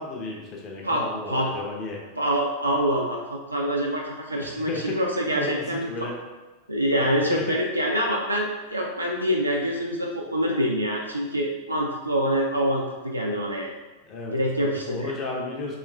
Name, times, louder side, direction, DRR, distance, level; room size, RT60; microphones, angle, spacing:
voice 1, 0.0-2.0 4.4-5.0 5.3-6.2 7.3-7.5 14.1-15.8, left 3 dB, 30° left, -1 dB, 0.8 m, -34 dB
voice 2, 0.8-1.5 2.2-5.9 6.7-13.7 14.3-15.1, equal, 85° right, -1 dB, 0.4 m, -25 dB
4.1 x 2.9 x 2.5 m, 1.2 s
figure-of-eight pair, 90°, 0 cm